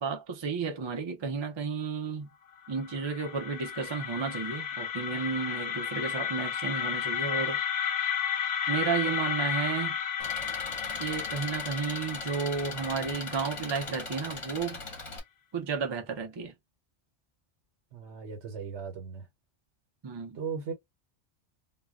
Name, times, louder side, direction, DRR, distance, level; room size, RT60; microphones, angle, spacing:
voice 1, 0.0-2.3 2.7-7.6 8.7-10.0 11.0-14.8 15.5-16.5 20.0-20.4, right 5 dB, 40° right, 0.4 m, -32 dB
sound 1, 2.6-14.6, left 8 dB, 90° left, 0.9 m, -33 dB
Engine, 10.2-15.2, left 3 dB, 30° left, 0.7 m, -40 dB
voice 2, 17.9-19.3 20.3-20.7, right 6 dB, 80° right, 1.0 m, -37 dB
2.2 x 2.1 x 3.5 m
omnidirectional pair, 1.2 m